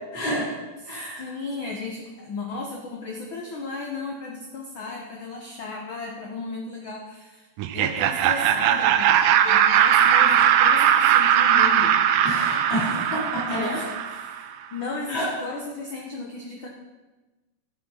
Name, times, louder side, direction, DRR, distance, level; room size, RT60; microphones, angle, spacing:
voice 1, 0.1-0.4 0.9-1.2 12.2-13.7 15.1-15.2, equal, 30° left, -9 dB, 4.4 m, -28 dB
voice 2, 0.8-7.5 7.7-12.0 13.5-16.7, left 3 dB, 90° left, 0 dB, 1.0 m, -35 dB
Laughter, 7.6-14.4, right 10 dB, 85° right, 2.2 m, -19 dB
12.0 x 6.0 x 5.6 m, 1.2 s
omnidirectional pair, 3.7 m